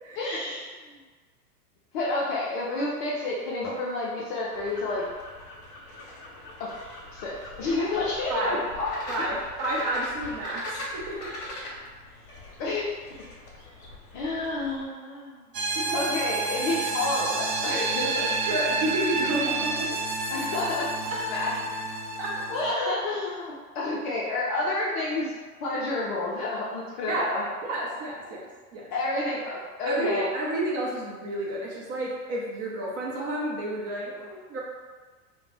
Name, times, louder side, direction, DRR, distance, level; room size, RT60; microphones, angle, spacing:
voice 1, 0.2-1.0 1.9-5.1 6.6-6.7 7.1-9.3 12.6-12.9 14.1-15.5 15.9-18.3 20.3-21.6 22.5-25.3 25.6-27.5 28.9-30.3, left 2 dB, 35° left, -5 dB, 0.4 m, -30 dB
sound 1, 4.5-14.9, left 1 dB, 50° left, 0.9 m, -41 dB
voice 2, 9.1-11.3 15.7-16.0 18.5-20.0 22.2-22.4 27.1-27.3 27.6-28.4 28.7-28.8 29.9-34.6, right 1 dB, 30° right, -4 dB, 0.7 m, -30 dB
sound 2, 15.5-22.7, right 3 dB, 80° right, 0.7 m, -29 dB
2.4 x 2.1 x 3.3 m, 1.4 s
hypercardioid pair, 95°, 48 cm